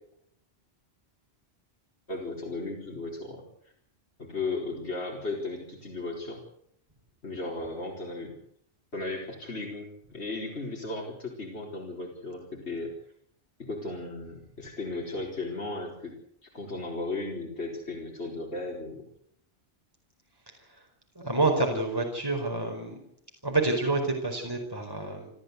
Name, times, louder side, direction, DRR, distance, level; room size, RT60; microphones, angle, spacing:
voice 1, 2.1-3.4 4.2-6.4 7.2-8.3 8.9-12.9 13.6-16.1 16.4-19.1, left 2 dB, 80° left, -1 dB, 4.7 m, -35 dB
voice 2, 21.1-23.0 23.4-25.3, right 2 dB, 20° right, 2 dB, 4.6 m, -28 dB
29.0 x 13.5 x 8.3 m, 0.71 s
omnidirectional pair, 1.1 m